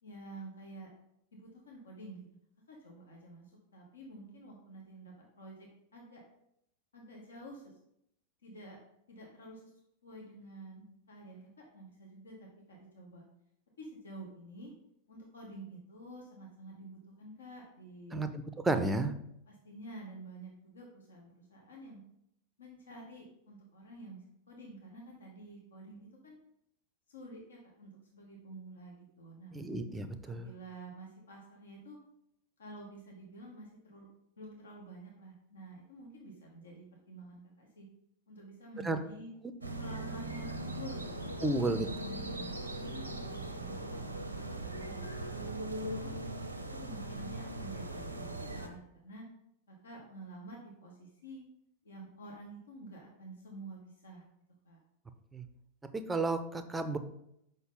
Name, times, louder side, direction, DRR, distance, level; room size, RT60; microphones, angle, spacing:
voice 1, 0.0-0.9 1.3-2.2 2.7-6.2 6.9-7.7 8.4-8.8 9.1-9.7 10.0-12.4 12.7-13.3 13.8-14.7 15.1-18.2 18.6-19.0 19.5-22.0 22.6-26.4 27.1-29.6 30.2-32.0 32.6-34.1 34.4-37.9 38.3-39.3 39.8-45.1 45.3-46.1 46.8-49.3 49.7-51.4 51.8-54.2 54.6-54.8, right 2 dB, 70° left, -1 dB, 1.2 m, -50 dB
voice 2, 18.6-19.1 29.5-30.5 38.8-39.0 41.4-41.9 55.3-55.4 55.9-57.0, right 2 dB, 10° right, 10 dB, 0.5 m, -32 dB
sound 1, 39.6-48.7, right 1 dB, 85° right, 0.7 m, -39 dB
6.1 x 5.4 x 3.8 m, 0.76 s
figure-of-eight pair, 90°, 0 cm